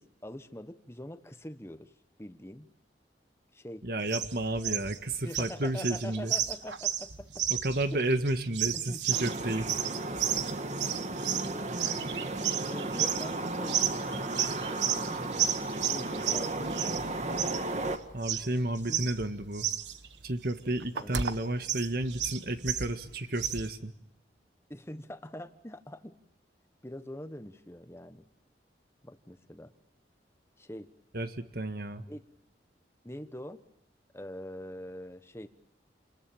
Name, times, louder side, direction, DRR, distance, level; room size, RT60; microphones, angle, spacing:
voice 1, 0.0-1.9 2.2-2.7 3.5-4.3 4.7-4.8 5.2-7.5 8.7-9.5 11.3-12.4 12.7-15.4 15.9-17.0 18.9-19.0 20.9-21.2 24.7-26.2 26.8-28.2 29.0-29.7 30.6-30.9 32.1-32.2 33.0-33.6 34.1-35.5, left 1 dB, 15° left, 10 dB, 1.2 m, -44 dB
voice 2, 3.8-6.3 7.6-9.7 18.1-19.7 20.2-23.9 31.1-32.0, right 1 dB, 55° right, 9 dB, 1.7 m, -32 dB
sound 1, 4.1-23.7, right 10 dB, 85° right, 1.3 m, -33 dB
sound 2, 9.1-18.0, right 2 dB, 40° right, 1.7 m, -34 dB
29.0 x 20.5 x 8.8 m, 0.81 s
head